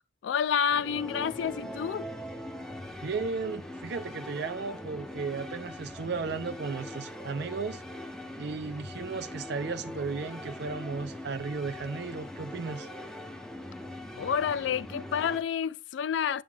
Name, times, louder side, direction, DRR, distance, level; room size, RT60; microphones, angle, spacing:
voice 1, 0.2-2.1 14.1-16.4, left 7 dB, 75° left, 0.3 m, -29 dB
sound 1, 0.7-15.4, left 1 dB, 5° left, 0.7 m, -41 dB
voice 2, 3.0-7.8 8.4-12.9, right 4 dB, 65° right, 0.5 m, -35 dB
7.6 x 7.2 x 2.4 m
head